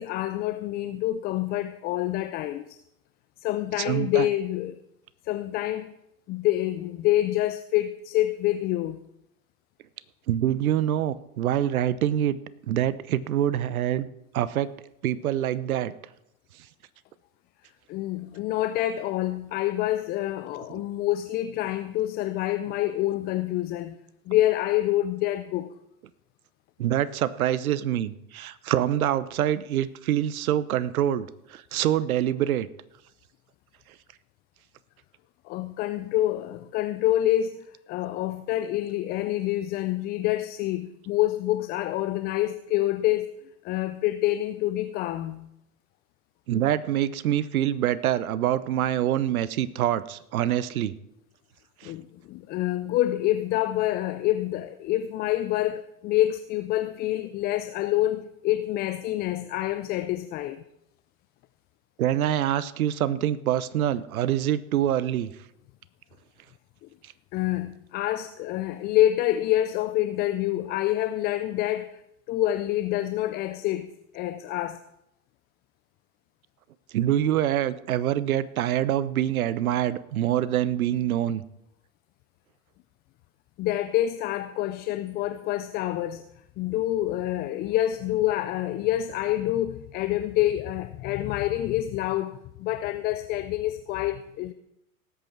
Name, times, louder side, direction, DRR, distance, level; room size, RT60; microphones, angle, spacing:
voice 1, 0.0-2.8 3.4-4.8 5.2-5.9 6.3-9.0 17.9-23.9 24.3-25.7 35.5-43.3 43.6-45.5 51.8-60.6 66.8-66.9 67.3-72.0 72.3-74.8 83.6-86.2 86.6-94.5, left 14 dB, 25° left, 0.4 m, -27 dB
voice 2, 3.8-4.3 10.3-12.4 12.7-14.1 14.3-14.7 15.0-15.9 20.7-20.8 26.8-32.7 46.5-50.9 51.8-51.9 62.0-65.3 76.9-81.4, right 11 dB, 70° right, 0.9 m, -25 dB
18.5 x 8.3 x 4.6 m
hypercardioid pair, 95°, 44 cm